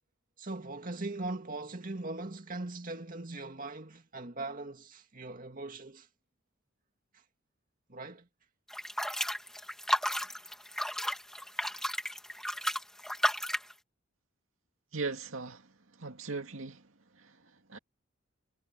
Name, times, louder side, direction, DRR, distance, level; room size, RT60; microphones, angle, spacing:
voice 1, 0.4-6.1 7.1-7.2 7.9-8.3, right 2 dB, 40° right, 2.2 m, -40 dB
sound 1, 8.7-13.7, equal, 5° left, 2.1 m, -33 dB
voice 2, 14.9-15.7 16.0-16.8 17.2-17.3 17.7-17.8, right 4 dB, 75° right, 2.3 m, -38 dB
head